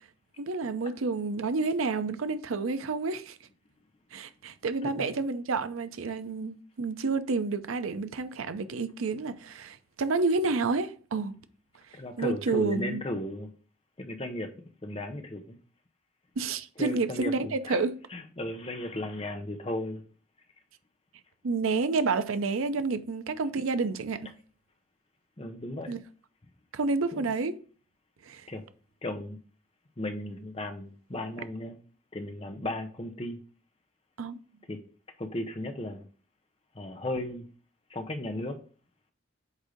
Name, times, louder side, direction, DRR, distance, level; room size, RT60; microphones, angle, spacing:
voice 1, 0.4-3.4 4.1-11.3 12.2-13.0 16.4-17.9 21.4-24.3 25.9-26.0 26.7-27.6 28.2-28.5 34.2-34.4, right 4 dB, 90° right, 0.6 m, -29 dB
voice 2, 4.8-5.2 11.9-13.5 14.0-14.5 14.8-15.6 16.8-17.3 17.7-17.8 18.1-20.0 25.4-26.0 27.1-27.2 28.5-28.6 29.0-29.4 30.0-31.8 32.1-33.4 34.7-34.8 35.2-36.0 36.7-37.5 37.9-38.6, left 1 dB, 30° left, 0.7 m, -35 dB
8.1 x 2.7 x 5.0 m
head